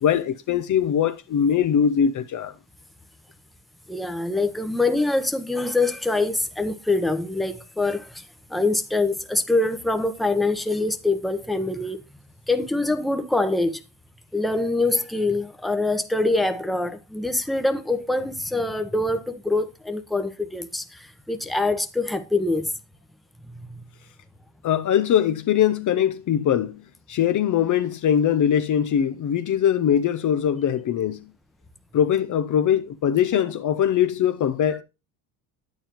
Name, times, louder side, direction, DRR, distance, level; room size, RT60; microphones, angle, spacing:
voice 1, 0.0-2.5 24.6-31.3 31.9-34.8, left 9 dB, 45° left, 0.7 m, -22 dB
voice 2, 3.9-12.0 12.5-13.8 14.3-22.7 23.7-23.8, left 2 dB, ahead, 0.9 m, -24 dB
9.2 x 8.8 x 3.0 m
cardioid pair, 105°, 43 cm